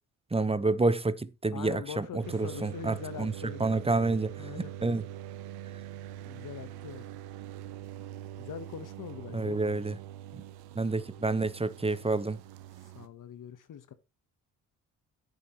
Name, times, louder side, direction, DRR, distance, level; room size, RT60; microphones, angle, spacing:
voice 1, 0.3-3.3 3.6-4.3 4.6-5.0 9.3-10.0 10.7-12.4, right 3 dB, 15° right, 1.0 m, -29 dB
voice 2, 1.5-3.6 4.4-4.7 6.3-7.1 8.4-9.6 12.9-13.9, left 8 dB, 55° left, 1.1 m, -42 dB
sound 1, 2.2-13.1, right 12 dB, 85° right, 1.0 m, -43 dB
10.5 x 7.9 x 3.0 m
supercardioid pair, 55°, 38 cm